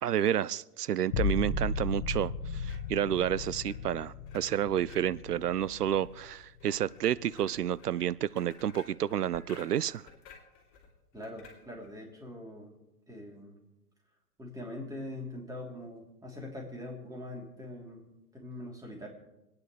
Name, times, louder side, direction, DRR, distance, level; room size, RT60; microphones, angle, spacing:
voice 1, 0.0-10.0, right 10 dB, 85° right, 20 dB, 0.5 m, -30 dB
sound 1, 1.1-6.6 7.0-7.6, left 4 dB, 55° left, 1.2 m, -35 dB
sound 2, 2.6-12.0, left 5 dB, 30° left, 3.1 m, -56 dB
voice 2, 11.1-12.8 13.1-13.6 14.4-18.0 18.3-19.1, left 1 dB, 10° right, -1 dB, 3.2 m, -43 dB
26.5 x 9.6 x 3.2 m, 0.98 s
figure-of-eight pair, 110°, 45 cm